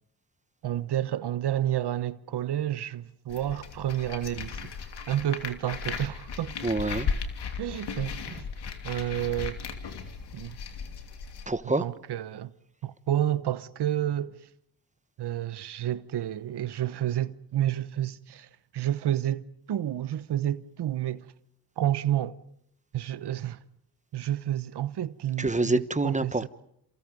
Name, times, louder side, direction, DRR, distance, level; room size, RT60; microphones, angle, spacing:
voice 1, 0.6-4.7 5.1-6.5 7.6-8.4 8.8-9.6 10.3-10.6 11.8-12.5 12.8-14.4 15.2-18.5 18.7-21.3 21.8-22.4 22.9-23.6 24.1-26.5, right 12 dB, 80° right, 1.1 m, -30 dB
sound 1, 3.3-11.5, left 6 dB, 85° left, 2.9 m, -36 dB
voice 2, 6.6-7.1 11.5-11.8 25.4-26.5, right 2 dB, 20° right, 1.3 m, -26 dB
28.0 x 28.0 x 5.3 m
cardioid pair, 60°, 39 cm